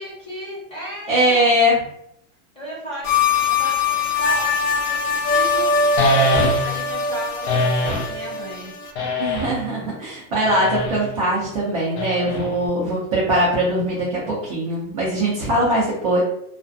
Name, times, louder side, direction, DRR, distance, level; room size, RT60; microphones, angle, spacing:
voice 1, 0.0-1.6 2.5-3.1 3.5-5.7 6.6-8.7, equal, 10° left, -6 dB, 0.8 m, -35 dB
voice 2, 1.1-1.8 9.2-16.2, right 1 dB, 25° right, -7 dB, 0.3 m, -21 dB
sound 1, 3.0-8.9, left 4 dB, 90° left, 0.8 m, -22 dB
sound 2, 6.0-6.9 7.5-8.1 8.9-9.7 10.4-11.1 12.0-12.7, left 1 dB, 50° left, 0.6 m, -22 dB
2.3 x 2.1 x 2.5 m, 0.74 s
supercardioid pair, 160°, 43 cm